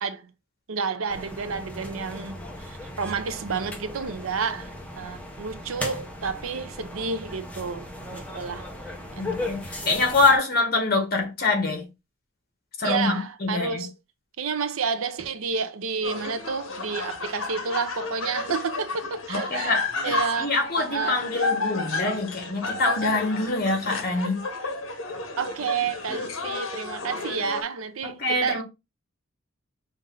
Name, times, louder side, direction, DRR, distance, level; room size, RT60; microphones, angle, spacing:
voice 1, 0.7-7.9 8.1-8.7 9.2-9.6 12.8-13.9 14.4-19.8 20.0-21.2 24.6-24.7 25.4-28.6, right 5 dB, 90° right, 0.6 m, -30 dB
sound 1, 1.1-10.4, left 1 dB, 5° left, 0.8 m, -37 dB
voice 2, 9.2-11.9 12.8-13.8 19.3-24.4 28.0-28.6, left 3 dB, 50° left, 1.5 m, -25 dB
sound 2, 16.0-27.6, left 3 dB, 70° left, 1.0 m, -32 dB
5.3 x 2.6 x 3.7 m
head